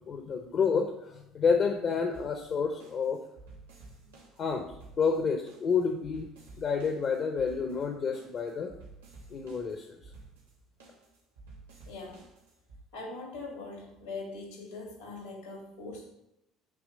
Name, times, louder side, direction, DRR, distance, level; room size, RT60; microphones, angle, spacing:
voice 1, 0.0-3.2 4.4-6.3 6.6-8.7 9.3-10.1, left 5 dB, 50° left, 4 dB, 0.9 m, -29 dB
sound 1, 2.1-12.8, right 3 dB, 90° right, 2.0 m, -53 dB
voice 2, 11.8-12.2 12.9-16.1, left 3 dB, 85° left, -1 dB, 3.1 m, -42 dB
8.4 x 3.2 x 6.4 m, 0.83 s
hypercardioid pair, 60°, 0 cm